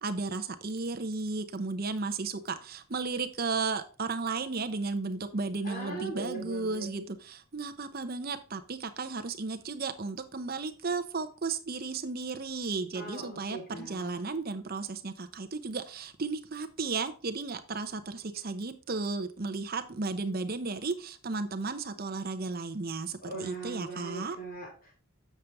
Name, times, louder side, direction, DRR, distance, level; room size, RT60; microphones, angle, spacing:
voice 1, 0.0-24.4, right 4 dB, 40° right, 9 dB, 0.7 m, -34 dB
voice 2, 5.6-6.9 12.9-14.2 23.2-24.9, right 3 dB, 40° left, 0 dB, 3.6 m, -40 dB
7.4 x 6.8 x 3.5 m, 0.37 s
head